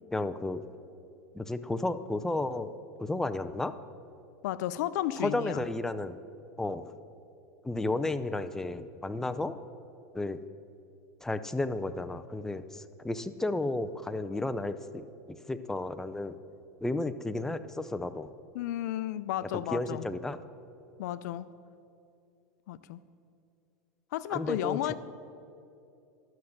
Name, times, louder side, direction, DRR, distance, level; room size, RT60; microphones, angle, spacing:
voice 1, 0.1-0.7 1.3-2.7 3.0-3.7 5.2-6.2 6.6-6.9 7.6-9.6 10.1-10.4 11.2-16.4 16.8-18.3 19.5-20.4 24.3-24.9, left 2 dB, 5° left, 10 dB, 0.4 m, -33 dB
voice 2, 4.4-5.6 18.5-20.0 21.0-21.5 22.7-23.0 24.1-24.9, left 13 dB, 70° left, 16 dB, 0.5 m, -33 dB
12.0 x 6.4 x 7.2 m, 2.6 s
supercardioid pair, 130°, 10 cm